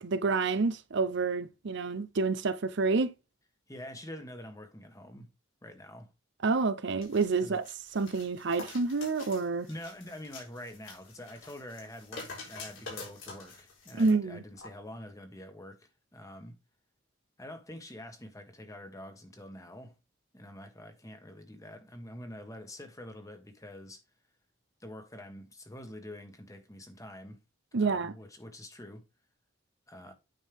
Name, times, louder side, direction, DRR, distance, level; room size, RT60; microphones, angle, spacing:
voice 1, 0.0-3.1 6.4-7.6 7.9-9.7 14.0-14.4 27.7-28.1, right 4 dB, 60° right, 0.6 m, -28 dB
voice 2, 3.7-5.3 5.6-6.1 7.4-7.6 9.7-16.6 17.4-20.0 20.3-24.0 24.8-27.4 27.8-29.0 29.9-30.1, left 1 dB, 15° left, 1.5 m, -46 dB
sound 1, 7.0-14.1 14.6-14.7, left 3 dB, 70° left, 4.1 m, -47 dB
9.2 x 5.5 x 3.5 m
head